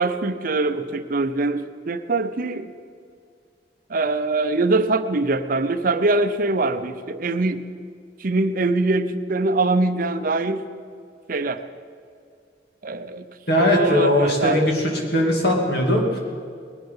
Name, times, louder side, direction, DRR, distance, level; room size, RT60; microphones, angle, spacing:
voice 1, 0.0-2.7 3.9-7.6 8.2-10.7 11.3-11.6 12.8-13.3 13.6-14.6, right 3 dB, 50° right, 11 dB, 0.6 m, -23 dB
voice 2, 13.5-16.2, left 1 dB, 60° left, 0 dB, 2.7 m, -20 dB
20.0 x 11.5 x 5.6 m, 2.2 s
head